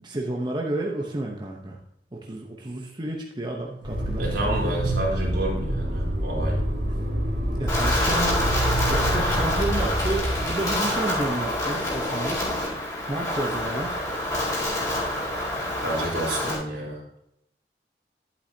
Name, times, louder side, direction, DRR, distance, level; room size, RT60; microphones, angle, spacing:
voice 1, 0.0-1.8 2.1-4.3 7.5-8.4 8.9-12.4 13.1-13.9, right 2 dB, 25° right, -1 dB, 0.9 m, -31 dB
Motor vehicle (road), 3.8-10.5, right 1 dB, 60° right, 2.7 m, -27 dB
voice 2, 4.2-6.6 15.8-17.0, right 1 dB, 75° right, -3 dB, 3.8 m, -29 dB
Wind, 7.7-16.6, left 1 dB, 20° left, 3.7 m, -27 dB
11.0 x 8.6 x 2.8 m, 0.78 s
head